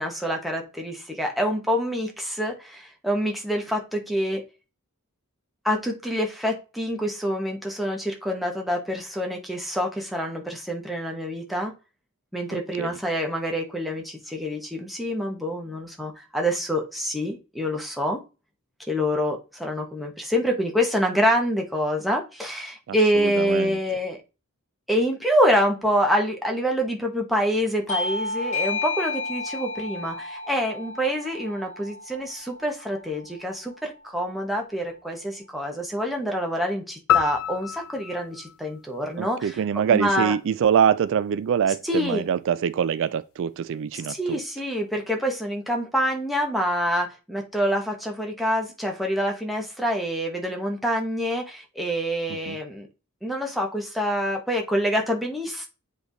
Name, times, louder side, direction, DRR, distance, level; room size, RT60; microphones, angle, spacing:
voice 1, 0.0-4.4 5.6-11.7 12.3-18.2 18.9-24.2 24.9-39.6 39.9-40.3 41.8-42.2 44.1-52.9 53.2-55.7, equal, ahead, 1.2 m, -26 dB
voice 2, 12.5-13.0 22.9-23.8 39.2-44.4 52.3-52.6, right 8 dB, 60° right, 0.3 m, -24 dB
Bell / Doorbell, 27.9-33.0, left 3 dB, 35° left, 1.5 m, -32 dB
sound 1, 37.1-39.6, left 10 dB, 65° left, 0.3 m, -27 dB
7.9 x 3.3 x 4.0 m
head